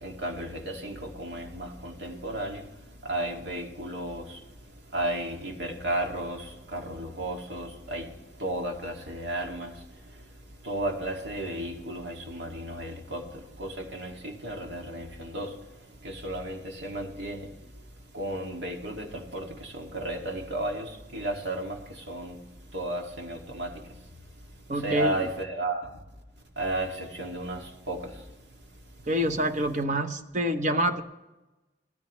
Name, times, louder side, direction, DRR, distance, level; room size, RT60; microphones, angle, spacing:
voice 1, 0.0-2.6 3.0-4.4 4.9-8.1 8.4-9.7 10.6-15.5 16.0-17.5 18.1-22.4 22.7-23.8 24.7-25.9 26.6-28.1, right 1 dB, 85° right, 2.2 m, -33 dB
voice 2, 24.7-25.1 29.1-31.0, right 1 dB, 45° right, 1.0 m, -26 dB
18.5 x 14.0 x 3.1 m
head